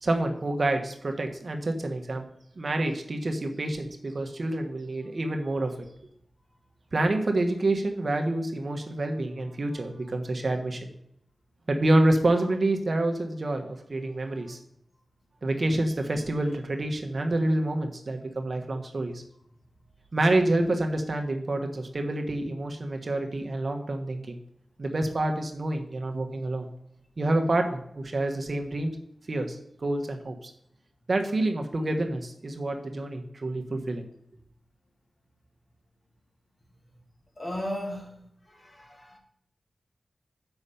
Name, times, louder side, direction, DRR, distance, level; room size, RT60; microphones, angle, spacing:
voice 1, 0.0-2.2 2.6-5.9 6.9-10.9 11.7-14.6 15.4-19.2 20.1-24.4 24.8-26.7 27.2-29.0 29.3-30.5 31.1-34.1, right 2 dB, 50° right, 4 dB, 1.2 m, -27 dB
voice 2, 37.4-38.2 38.5-39.2, left 1 dB, 35° left, 1 dB, 2.5 m, -35 dB
7.0 x 5.6 x 6.8 m, 0.73 s
wide cardioid pair, 75°, 0 cm